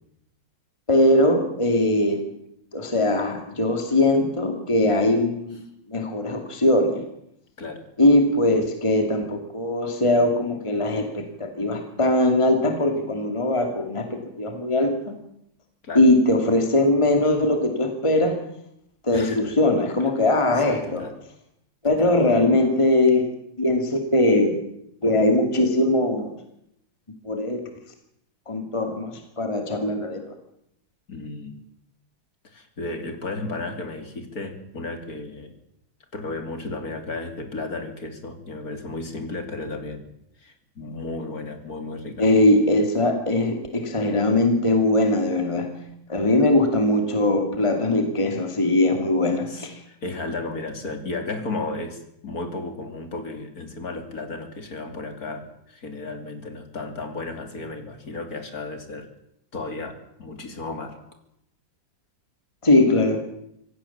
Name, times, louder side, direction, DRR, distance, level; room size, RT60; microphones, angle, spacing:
voice 1, 0.9-2.3 2.7-5.6 5.9-7.1 8.0-15.2 15.9-18.4 19.0-21.0 21.8-23.3 23.6-24.6 25.0-26.3 27.2-27.6 28.5-30.2 42.2-45.8 46.1-49.7 62.6-63.2, left 1 dB, 15° left, 5 dB, 2.4 m, -21 dB
voice 2, 19.1-19.5 20.0-20.1 20.7-21.1 21.8-22.2 31.1-31.6 32.4-35.5 36.1-40.1 40.4-42.3 49.5-59.1 59.5-61.0, left 3 dB, 45° left, 6 dB, 3.4 m, -34 dB
25.5 x 17.0 x 7.3 m, 0.78 s
omnidirectional pair, 2.2 m